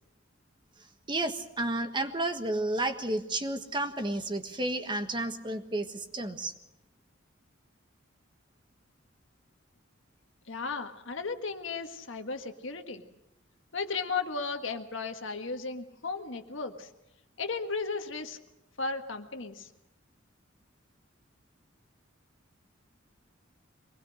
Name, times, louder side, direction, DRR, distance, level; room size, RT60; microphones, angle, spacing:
voice 1, 1.1-6.5, right 2 dB, 25° right, 7 dB, 1.5 m, -31 dB
voice 2, 10.5-13.0 13.7-16.9 17.4-18.4 18.8-19.7, left 4 dB, 70° left, 6 dB, 1.7 m, -35 dB
23.5 x 20.0 x 6.4 m, 0.93 s
head